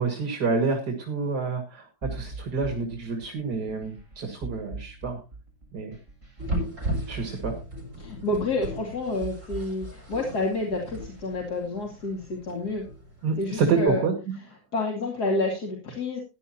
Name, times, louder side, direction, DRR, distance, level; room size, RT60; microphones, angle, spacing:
voice 1, 0.0-5.2 5.7-6.0 7.1-7.5 13.2-14.1, right 4 dB, 80° right, 3 dB, 2.6 m, -28 dB
sound 1, 2.0-11.5, right 3 dB, 30° right, 7.9 m, -41 dB
sound 2, 6.4-13.9, right 1 dB, 50° right, 6.8 m, -37 dB
voice 2, 8.0-12.8 13.4-14.0 14.7-16.2, left 2 dB, 70° left, -1 dB, 3.0 m, -29 dB
16.0 x 11.0 x 2.9 m, 0.28 s
omnidirectional pair, 1.7 m